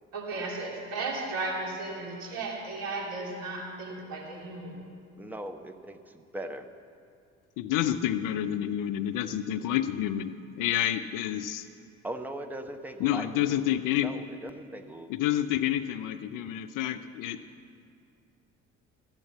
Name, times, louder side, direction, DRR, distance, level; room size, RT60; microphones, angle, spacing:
voice 1, 0.1-4.8, right 3 dB, 65° right, -1 dB, 3.1 m, -35 dB
voice 2, 5.2-6.0 6.3-6.6 12.0-15.1, right 1 dB, 5° right, 8 dB, 1.0 m, -39 dB
voice 3, 7.6-11.6 13.0-14.1 15.1-17.4, left 11 dB, 55° left, 10 dB, 0.7 m, -29 dB
13.5 x 8.9 x 8.1 m, 2.5 s
figure-of-eight pair, 55°, 38 cm